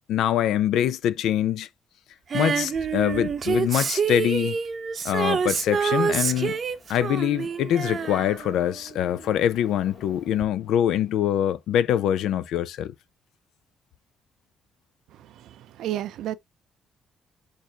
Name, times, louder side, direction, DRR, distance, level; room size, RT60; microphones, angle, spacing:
voice 1, 0.1-1.7 2.3-4.6 5.0-6.6 6.9-12.9, left 10 dB, 85° left, 0.4 m, -24 dB
Female singing, 2.3-9.3 10.4-10.5, right 6 dB, 45° right, 0.7 m, -27 dB
sound 1, 5.0-11.4, left 4 dB, 65° left, 1.9 m, -51 dB
voice 2, 15.1-16.4, right 12 dB, 80° right, 0.5 m, -33 dB
6.4 x 2.6 x 2.8 m
cardioid pair, 90°, 0 cm